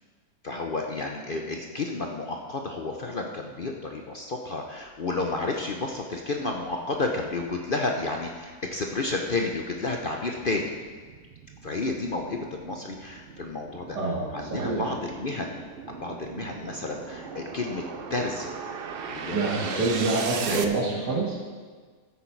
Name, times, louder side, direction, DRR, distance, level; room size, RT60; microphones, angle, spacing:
voice 1, 0.4-10.7 11.6-14.0 14.3-15.6 16.0-17.8 18.1-18.6 19.1-19.9 20.5-20.7, left 3 dB, 45° left, 2 dB, 0.7 m, -31 dB
sound 1, 5.9-6.0 6.5-20.6, right 6 dB, 55° right, 0.6 m, -39 dB
voice 2, 13.9-14.8 19.3-21.4, right 3 dB, 85° right, -2 dB, 2.6 m, -27 dB
14.5 x 8.2 x 4.6 m, 1.5 s
omnidirectional pair, 1.7 m